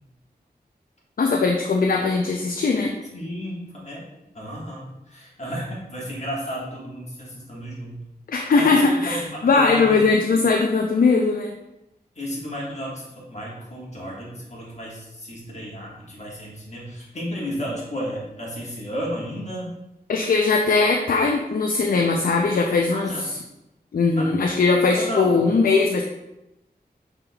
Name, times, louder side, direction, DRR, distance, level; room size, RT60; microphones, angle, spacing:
voice 1, 1.2-2.9 8.3-11.5 20.1-23.1 23.9-26.0, left 4 dB, 60° left, 1 dB, 0.4 m, -20 dB
voice 2, 3.1-4.0 4.3-8.0 8.5-10.4 12.1-19.7 22.9-23.2 24.1-24.3 24.9-25.4, equal, 45° left, -4 dB, 1.5 m, -33 dB
6.1 x 3.4 x 2.3 m, 0.94 s
wide cardioid pair, 75°, 17 cm